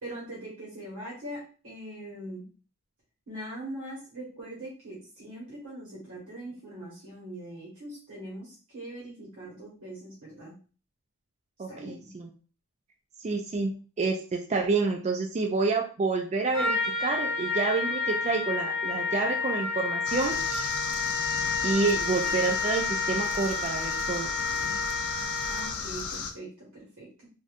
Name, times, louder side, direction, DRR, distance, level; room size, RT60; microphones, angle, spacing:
voice 1, 0.0-2.4 3.3-10.6 11.7-12.1 25.5-27.3, right 1 dB, 65° right, -6 dB, 1.4 m, -41 dB
voice 2, 11.6-12.3 13.2-20.7 21.6-24.3, right 4 dB, 30° right, 2 dB, 0.4 m, -29 dB
Trumpet, 16.5-25.9, left 4 dB, 5° left, 1.0 m, -30 dB
sound 1, 20.0-26.3, left 5 dB, 70° left, 0.5 m, -35 dB
3.5 x 2.7 x 2.4 m, 0.37 s
head